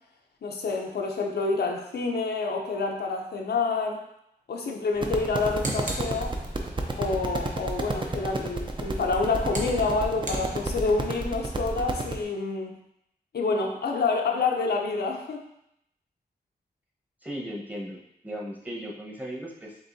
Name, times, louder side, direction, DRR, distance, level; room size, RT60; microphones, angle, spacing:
voice 1, 0.4-4.0 4.5-6.4 7.0-12.8 13.3-15.5, left 4 dB, 80° left, 1 dB, 0.6 m, -28 dB
sound 1, 5.0-12.2, right 2 dB, 30° right, 0.6 m, -31 dB
sound 2, 5.2-6.8 8.8-11.1, right 1 dB, 50° right, 1.0 m, -38 dB
voice 2, 17.2-19.8, equal, 10° right, -3 dB, 1.0 m, -37 dB
7.3 x 2.6 x 2.7 m, 0.79 s
wide cardioid pair, 90°, 17 cm